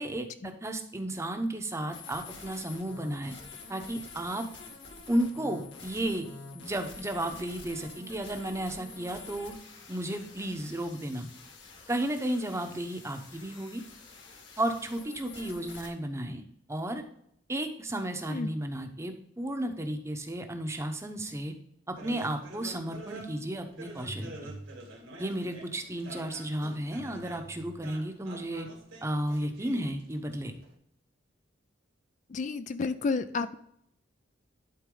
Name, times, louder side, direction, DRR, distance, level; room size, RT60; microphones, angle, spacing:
voice 1, 0.0-3.4 3.7-4.5 5.1-6.3 6.5-9.5 9.9-11.3 11.9-13.8 14.6-16.4 16.7-17.0 17.5-21.5 21.9-24.5 25.2-28.7 29.0-30.5, right 1 dB, 15° right, 6 dB, 0.8 m, -33 dB
sound 1, 1.9-15.9, left 4 dB, 65° left, 1.7 m, -47 dB
sound 2, 22.0-30.7, right 1 dB, 80° right, 2.1 m, -46 dB
voice 2, 32.3-33.6, left 4 dB, 40° left, 11 dB, 0.4 m, -31 dB
11.5 x 4.3 x 3.8 m, 0.72 s
head